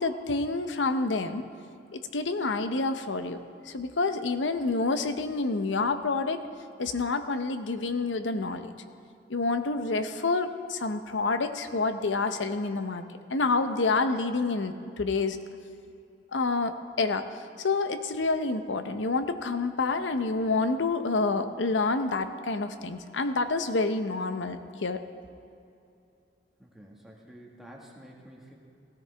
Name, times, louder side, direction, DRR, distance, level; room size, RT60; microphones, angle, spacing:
voice 1, 0.0-1.4 1.9-3.4 3.7-6.4 6.8-8.7 9.3-13.0 13.3-15.4 16.3-17.2 17.6-25.0, left 3 dB, 90° left, 9 dB, 0.7 m, -28 dB
voice 2, 26.6-28.6, equal, ahead, -2 dB, 1.6 m, -49 dB
16.5 x 13.5 x 3.4 m, 2.7 s
head